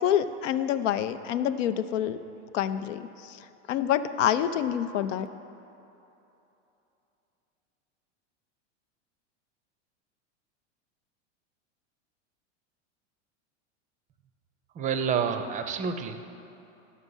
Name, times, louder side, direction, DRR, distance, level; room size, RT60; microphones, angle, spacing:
voice 1, 0.0-2.2 2.5-3.4 3.7-5.3, left 10 dB, 80° left, 11 dB, 0.6 m, -27 dB
voice 2, 14.8-16.2, right 6 dB, 20° right, 8 dB, 0.5 m, -28 dB
11.5 x 6.3 x 5.4 m, 2.9 s
supercardioid pair, 125°, 37 cm